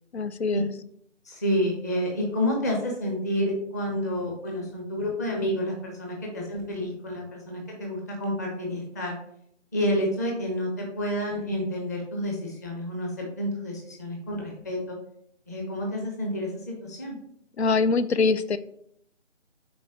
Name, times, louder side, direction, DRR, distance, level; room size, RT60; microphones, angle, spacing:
voice 1, 0.1-0.7 17.6-18.6, left 4 dB, 60° left, 14 dB, 0.6 m, -23 dB
voice 2, 1.2-9.1 9.7-15.0 15.5-17.2, equal, 15° left, 0 dB, 0.8 m, -29 dB
6.4 x 4.3 x 4.6 m, 0.70 s
figure-of-eight pair, 155°, 37 cm